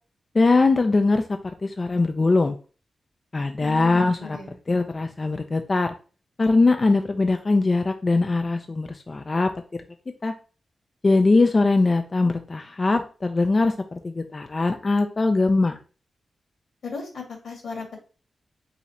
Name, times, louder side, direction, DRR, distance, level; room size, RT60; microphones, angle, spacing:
voice 1, 0.3-1.2 1.6-2.6 3.3-4.4 4.7-5.9 6.4-9.5 10.2-10.3 11.0-15.8, left 3 dB, 35° left, 6 dB, 0.4 m, -21 dB
voice 2, 3.6-4.6 16.8-18.0, left 4 dB, 85° left, 0 dB, 1.7 m, -36 dB
4.0 x 2.4 x 4.2 m, 0.37 s
wide cardioid pair, 95°, 0 cm